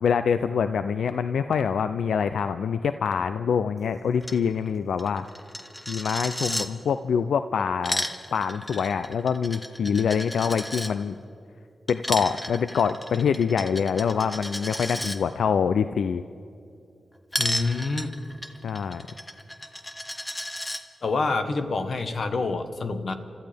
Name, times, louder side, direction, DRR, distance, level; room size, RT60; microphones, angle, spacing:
voice 1, 0.0-5.2 5.9-8.1 8.3-11.2 11.9-16.2 18.6-19.1, left 6 dB, 90° left, 11 dB, 0.4 m, -25 dB
Coin (dropping), 4.2-4.4 4.7-4.8 5.0-6.7 7.6-10.9 11.9-15.2 17.3-20.8, left 1 dB, 15° left, 1.0 m, -33 dB
voice 2, 17.4-18.1 21.0-23.1, left 3 dB, 60° left, 8 dB, 1.2 m, -27 dB
29.5 x 14.0 x 3.5 m, 2.5 s
cardioid pair, 75°, 0 cm